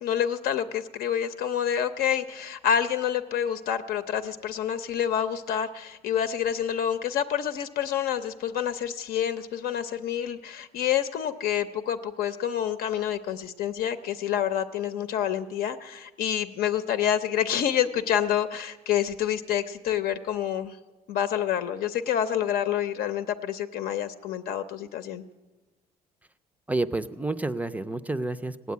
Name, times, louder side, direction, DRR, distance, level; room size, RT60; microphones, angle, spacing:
voice 1, 0.0-20.8 21.1-25.2, left 9 dB, 70° left, 9 dB, 0.8 m, -28 dB
voice 2, 26.7-28.7, right 2 dB, 10° right, 12 dB, 0.4 m, -29 dB
17.5 x 8.3 x 9.4 m, 1.2 s
cardioid pair, 145°, 16 cm